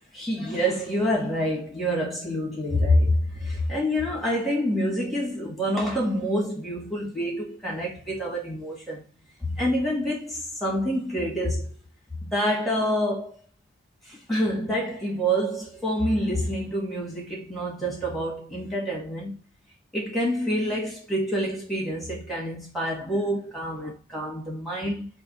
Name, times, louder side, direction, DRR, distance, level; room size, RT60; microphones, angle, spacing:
voice 1, 0.1-9.0 9.4-11.7 12.2-13.3 14.1-19.4 19.9-25.1, equal, ahead, 1.4 m, -27 dB
3.5 x 2.8 x 3.9 m
head